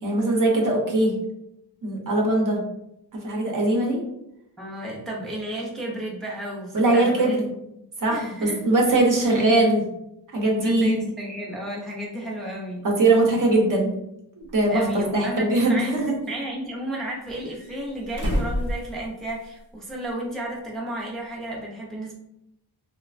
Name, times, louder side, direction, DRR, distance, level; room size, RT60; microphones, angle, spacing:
voice 1, 0.0-1.1 1.8-2.6 3.1-4.0 6.7-7.4 8.0-9.8 10.3-11.1 12.8-13.9 14.4-16.0, right 2 dB, 55° right, -1 dB, 0.8 m, -21 dB
voice 2, 4.6-7.4 8.1-8.6 10.4-12.9 14.7-22.2, right 1 dB, ahead, -3 dB, 0.4 m, -33 dB
sound 1, 14.5-14.6 15.4-16.4 17.3-19.6 19.9-20.0 21.6-21.7, equal, 85° right, 0.9 m, -31 dB
3.1 x 2.0 x 2.4 m, 0.83 s
wide cardioid pair, 105°, 39 cm